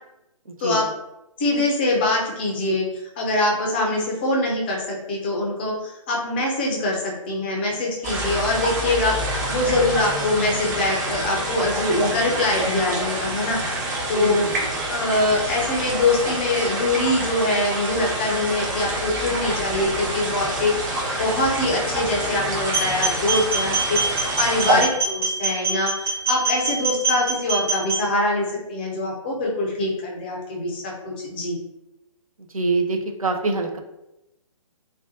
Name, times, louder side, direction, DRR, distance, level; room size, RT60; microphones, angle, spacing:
voice 1, 0.5-0.8 14.2-14.8 24.7-24.8 32.5-33.8, right 3 dB, 80° right, 4 dB, 0.5 m, -25 dB
voice 2, 1.4-2.9 3.2-13.6 14.1-14.5 14.9-20.9 21.2-31.6, left 2 dB, 20° left, -1 dB, 0.3 m, -23 dB
sound 1, 8.0-24.8, right 1 dB, 35° right, 0.6 m, -27 dB
sound 2, 22.7-28.0, right 3 dB, 15° right, 0.9 m, -24 dB
2.4 x 2.2 x 2.5 m, 0.90 s
figure-of-eight pair, 130°, 18 cm